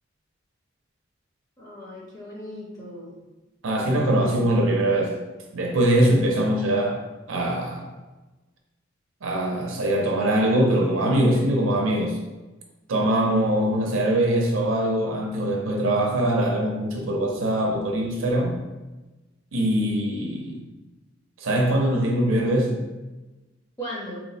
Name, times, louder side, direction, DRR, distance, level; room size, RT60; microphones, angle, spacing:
voice 1, 1.6-3.1 23.8-24.2, equal, 20° left, -5 dB, 0.6 m, -37 dB
voice 2, 3.6-5.2 5.5-7.9 9.2-12.2 12.9-18.6 19.5-20.7 21.4-22.8, right 1 dB, 85° right, 1 dB, 0.6 m, -22 dB
2.9 x 2.1 x 4.1 m, 1.1 s
head